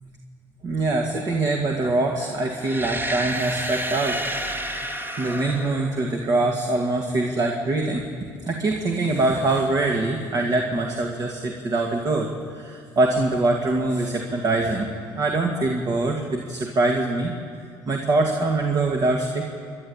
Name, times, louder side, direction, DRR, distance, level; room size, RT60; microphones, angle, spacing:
voice 1, 0.6-4.2 5.2-8.0 8.5-12.3 12.5-14.9 15.2-17.3 17.9-19.5, right 2 dB, 45° right, 1 dB, 2.2 m, -23 dB
sound 1, 2.6-6.5, right 1 dB, 25° right, 1.6 m, -30 dB
30.0 x 11.5 x 8.8 m, 2.3 s
cardioid pair, 125°, 9 cm